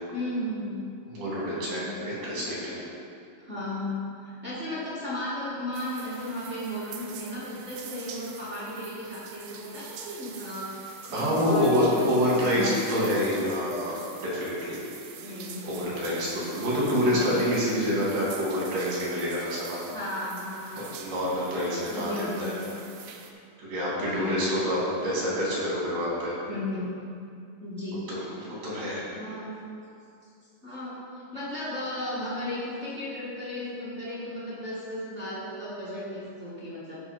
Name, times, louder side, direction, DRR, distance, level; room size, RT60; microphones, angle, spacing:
voice 1, 0.1-0.9 1.5-2.5 3.4-13.2 15.2-16.0 16.7-17.4 19.9-20.9 21.9-22.8 24.0-24.7 25.2-25.3 26.5-26.9 27.6-29.5 30.6-31.1 31.3-37.0, left 1 dB, 45° right, -10 dB, 0.9 m, -35 dB
voice 2, 1.1-2.8 11.1-14.8 15.7-19.8 20.8-22.5 23.6-26.4 28.1-28.2 28.6-29.1, equal, 65° right, -6 dB, 4.4 m, -27 dB
sound 1, 5.7-23.3, right 7 dB, 80° right, 1.6 m, -45 dB
12.5 x 5.1 x 5.4 m, 2.4 s
omnidirectional pair, 4.3 m